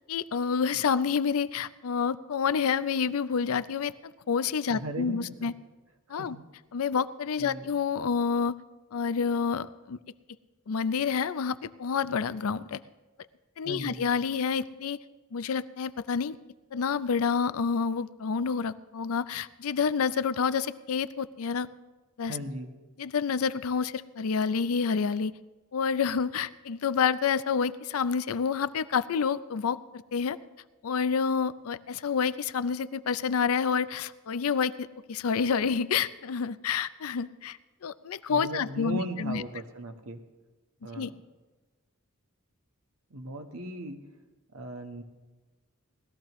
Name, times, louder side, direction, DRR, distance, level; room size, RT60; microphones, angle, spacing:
voice 1, 0.1-3.9 4.3-5.5 6.1-6.4 6.7-8.6 8.9-10.0 10.7-12.8 13.6-15.0 15.3-16.4 16.7-21.7 22.2-22.4 23.0-25.3 25.7-30.4 30.8-39.4 40.9-41.1, left 6 dB, 80° left, 15 dB, 0.5 m, -28 dB
voice 2, 4.7-5.5 6.2-6.4 7.4-7.7 13.6-14.1 22.3-22.7 38.3-40.2 40.8-41.1 43.1-44.0 44.5-45.0, right 1 dB, 90° right, 5 dB, 1.3 m, -38 dB
20.0 x 13.5 x 3.1 m, 1.2 s
head